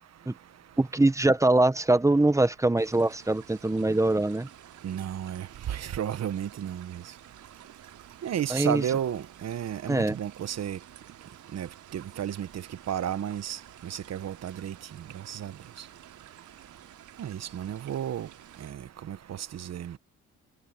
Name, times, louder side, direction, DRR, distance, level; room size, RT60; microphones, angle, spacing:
voice 1, 0.8-4.5 8.5-8.8 9.9-10.2, right 2 dB, 10° right, 1.0 m, -23 dB
sound 1, 2.8-18.7, right 11 dB, 75° right, 4.0 m, -53 dB
voice 2, 4.8-7.0 8.2-10.8 11.5-12.5 12.9-14.7 15.3-15.5 17.2-18.3 18.6-18.8 19.1-19.2 19.5-19.9, right 10 dB, 60° right, 1.3 m, -32 dB
cardioid pair, 90°, 30 cm